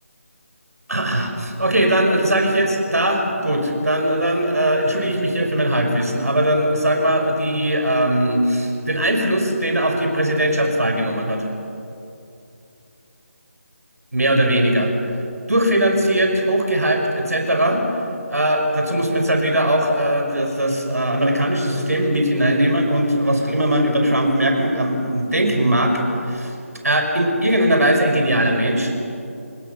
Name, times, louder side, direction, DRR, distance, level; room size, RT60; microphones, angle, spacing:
voice 1, 0.9-11.5 14.1-14.9 15.5-17.8 18.3-26.5 26.8-28.9, right 1 dB, 85° right, 3 dB, 5.5 m, -19 dB
28.5 x 20.5 x 6.9 m, 2.7 s
figure-of-eight pair, 165°, 8 cm